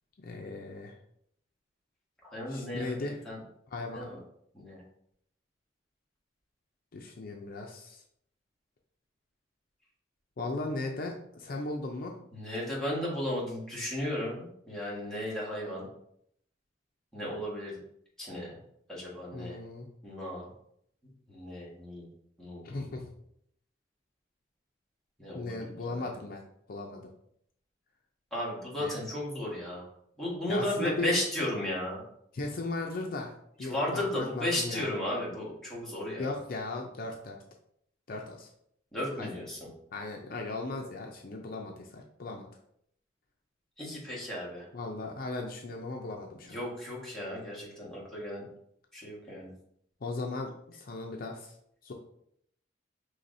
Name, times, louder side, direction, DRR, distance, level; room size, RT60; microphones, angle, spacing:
voice 1, 0.2-1.0 2.5-3.2 3.7-4.1 6.9-8.0 10.4-12.2 19.3-19.9 22.6-23.1 25.3-26.4 26.7-27.1 28.8-28.9 30.5-31.1 32.3-34.9 36.2-37.4 38.1-38.5 39.2-39.3 39.9-42.5 44.7-46.6 50.0-51.5 51.8-51.9, left 2 dB, 55° left, 2 dB, 0.5 m, -37 dB
voice 2, 2.2-2.9 3.2-3.4 3.9-4.2 4.5-4.8 12.3-15.8 17.1-17.8 18.2-18.6 18.9-19.6 20.0-20.5 21.3-22.1 22.4-22.7 25.2-25.6 25.9-26.0 28.3-29.9 30.2-32.0 33.6-36.3 38.9-39.7 43.8-44.6 46.4-48.4 48.9-49.5, left 1 dB, 5° left, -7 dB, 1.5 m, -34 dB
5.6 x 3.1 x 2.6 m, 0.71 s
head